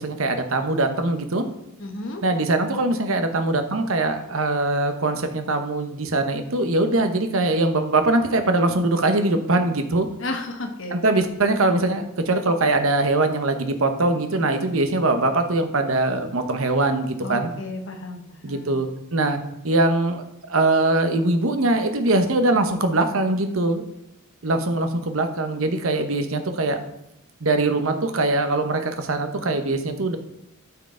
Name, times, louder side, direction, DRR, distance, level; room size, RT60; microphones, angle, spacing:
voice 1, 0.0-1.4 2.2-10.1 10.9-17.5 18.4-19.4 19.6-23.8 24.4-26.8 27.4-30.2, right 2 dB, 75° right, 7 dB, 0.9 m, -22 dB
voice 2, 1.8-2.2 10.2-11.0 17.2-18.8, left 2 dB, 60° left, 5 dB, 1.1 m, -33 dB
12.5 x 4.7 x 3.8 m, 0.83 s
head